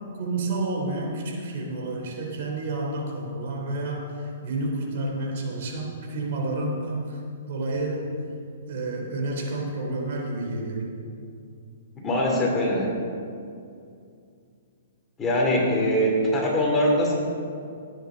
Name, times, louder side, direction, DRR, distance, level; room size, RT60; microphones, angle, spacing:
voice 1, 0.2-7.2 7.5-8.1 8.7-10.9, right 2 dB, 55° right, 0 dB, 3.2 m, -30 dB
voice 2, 12.0-12.9 15.2-17.2, equal, 15° left, -3 dB, 2.9 m, -22 dB
17.0 x 9.2 x 4.0 m, 2.4 s
hypercardioid pair, 145°, 0 cm